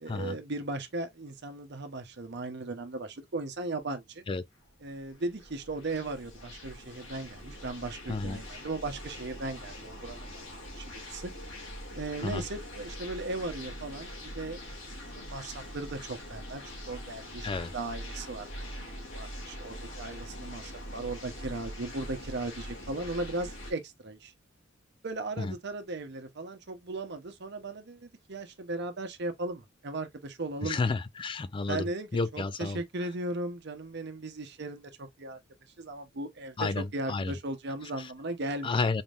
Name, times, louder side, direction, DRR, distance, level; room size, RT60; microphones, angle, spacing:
voice 1, 0.0-4.2 4.8-10.4 10.8-11.3 11.9-14.6 15.1-24.3 25.0-30.9 31.7-35.4 35.8-38.7, right 2 dB, 60° right, 0.9 m, -37 dB
sound 1, 4.6-23.7, equal, 65° left, 2.1 m, -43 dB
voice 2, 8.1-8.4 12.2-12.4 17.4-17.7 25.4-25.6 30.6-32.8 36.6-37.3 38.0-38.1 38.6-39.0, left 3 dB, 25° left, 0.3 m, -31 dB
4.1 x 3.6 x 2.4 m
head